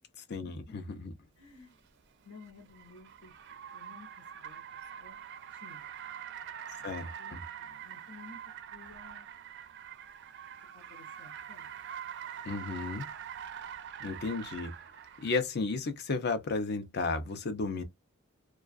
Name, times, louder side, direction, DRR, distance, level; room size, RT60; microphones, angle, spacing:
voice 1, 0.3-1.1 6.8-7.4 12.4-13.1 14.0-14.7 15.2-17.8, left 3 dB, 55° left, 0.6 m, -33 dB
voice 2, 1.4-1.8 2.2-3.3 3.7-4.1 4.3-5.2 5.5-5.9 6.8-6.9 7.2-8.4 8.7-9.3 10.7-11.7, left 4 dB, 85° left, 1.1 m, -54 dB
Car, 1.5-15.4, right 9 dB, 55° right, 0.4 m, -45 dB
2.3 x 2.3 x 2.3 m
head